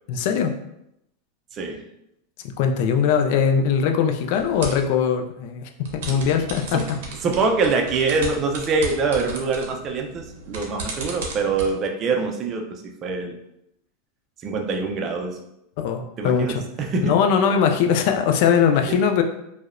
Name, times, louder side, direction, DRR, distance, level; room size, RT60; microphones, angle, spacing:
voice 1, 0.1-0.6 2.4-7.0 15.8-16.6 17.0-19.2, left 7 dB, 60° left, 5 dB, 0.3 m, -21 dB
sound 1, 4.3-4.9 5.8-11.7, right 2 dB, 70° right, 0.6 m, -35 dB
voice 2, 7.2-12.7 13.0-13.4 14.4-15.4 16.2-17.2, right 4 dB, 35° right, 3 dB, 0.4 m, -24 dB
2.7 x 2.0 x 2.4 m, 0.80 s
supercardioid pair, 130°, 0 cm